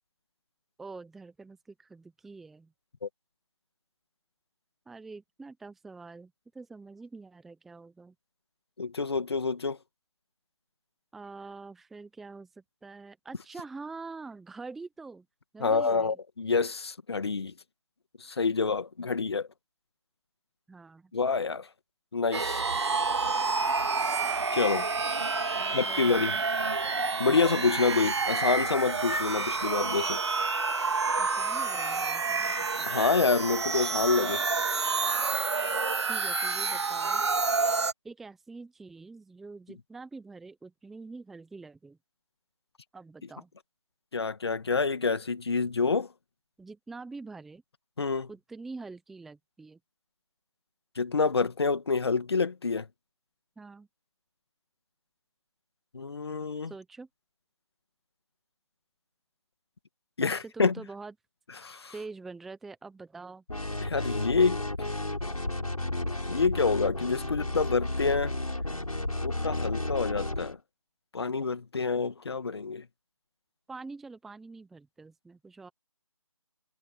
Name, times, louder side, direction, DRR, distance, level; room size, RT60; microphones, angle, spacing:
voice 1, 0.8-2.7 4.9-8.1 11.1-12.5 12.8-15.3 15.5-16.1 20.7-21.1 25.5-26.4 31.2-32.9 36.1-37.2 38.0-42.0 42.9-43.5 46.6-47.6 48.3-49.8 53.6-53.9 56.7-57.1 60.2-61.1 61.9-63.4 73.7-75.7, right 3 dB, ahead, 0.9 m, -45 dB
voice 2, 8.8-9.8 15.6-17.5 18.2-19.5 21.1-21.7 22.1-22.6 24.5-24.9 25.7-26.4 27.2-30.2 32.9-34.4 44.1-46.1 48.0-48.3 51.0-52.9 55.9-56.7 60.2-60.7 61.6-61.9 63.8-64.6 66.3-68.3 69.2-70.6 71.1-72.8, left 4 dB, 45° left, 2.1 m, -27 dB
sound 1, 22.3-37.9, right 4 dB, 50° right, 2.7 m, -29 dB
sound 2, 63.5-70.6, left 1 dB, 90° left, 6.5 m, -32 dB
figure-of-eight pair, 160°, 18 cm